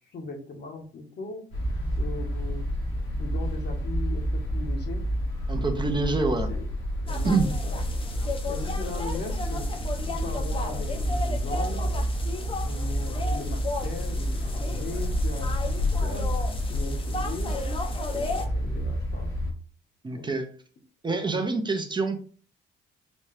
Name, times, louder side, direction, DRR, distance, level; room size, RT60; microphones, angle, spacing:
voice 1, 0.1-1.4 2.0-2.7 3.2-5.0 5.6-6.7 7.0-7.4 7.7-7.8 8.5-9.6 10.1-12.1 12.6-15.5 15.8-16.3 16.7-17.6 18.1-19.3 20.1-20.3, left 3 dB, 55° left, 3 dB, 1.0 m, -39 dB
sound 1, 1.5-19.5, equal, 85° left, 1.4 m, -29 dB
voice 2, 5.5-6.5 7.2-7.5 20.0-20.5 21.0-22.2, right 3 dB, 25° right, 5 dB, 0.6 m, -26 dB
sound 2, 7.1-18.5, left 3 dB, 25° left, 0.6 m, -35 dB
4.1 x 2.3 x 3.3 m, 0.42 s
cardioid pair, 90°, 20 cm